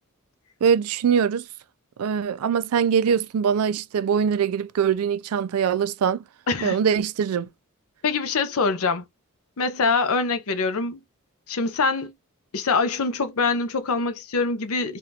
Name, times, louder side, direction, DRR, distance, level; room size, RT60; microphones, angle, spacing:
voice 1, 0.6-1.5 2.0-6.2 6.6-7.5, right 7 dB, 75° right, 0.4 m, -22 dB
voice 2, 6.5-6.8 8.0-9.0 9.6-11.0 11.5-12.1 12.5-15.0, left 4 dB, 70° left, 0.7 m, -24 dB
3.5 x 2.4 x 2.7 m
head